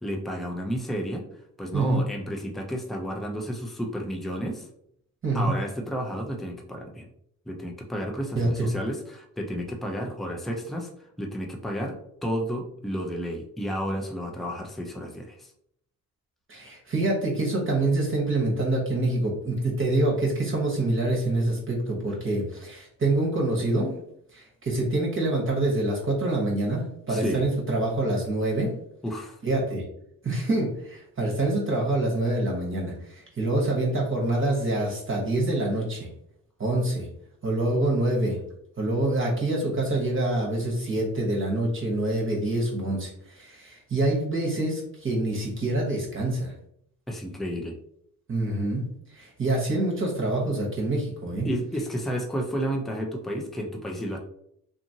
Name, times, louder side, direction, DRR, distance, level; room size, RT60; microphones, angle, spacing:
voice 1, 0.0-1.2 1.6-4.7 5.3-7.1 7.5-10.9 11.2-15.5 27.1-27.5 29.0-29.4 47.1-47.8 51.4-54.2, equal, ahead, 1 dB, 0.5 m, -31 dB
voice 2, 8.4-8.7 16.5-23.9 24.3-28.7 29.4-29.8 30.2-36.1 36.6-37.1 37.4-38.4 38.8-46.5 48.3-48.8 49.1-51.5, right 2 dB, 35° right, -2 dB, 1.0 m, -26 dB
2.7 x 2.5 x 2.7 m, 0.72 s
supercardioid pair, 50°, 37 cm